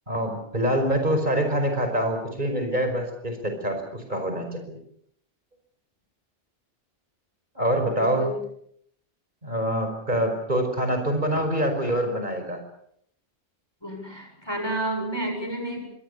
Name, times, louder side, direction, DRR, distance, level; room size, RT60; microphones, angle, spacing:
voice 1, 0.1-4.8 7.6-8.3 9.4-12.6, right 1 dB, 45° right, 5 dB, 5.5 m, -25 dB
voice 2, 7.8-8.4 13.8-15.8, right 1 dB, 25° left, 3 dB, 7.3 m, -30 dB
26.5 x 24.0 x 6.9 m, 0.70 s
omnidirectional pair, 1.1 m